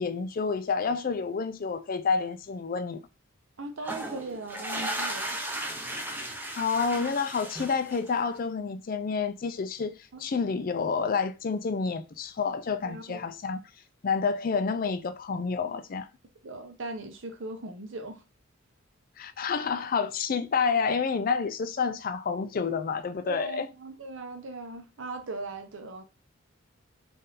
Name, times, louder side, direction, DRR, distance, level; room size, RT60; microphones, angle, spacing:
voice 1, 0.0-3.0 6.5-13.6 14.0-16.1 19.2-23.7, left 5 dB, 45° left, 0.4 m, -29 dB
voice 2, 3.6-5.4 10.1-10.2 12.8-13.2 16.4-18.2 23.3-26.0, right 2 dB, 65° right, 0.8 m, -39 dB
sound 1, 3.8-8.3, right 1 dB, 10° right, 0.6 m, -35 dB
3.8 x 2.5 x 4.0 m
head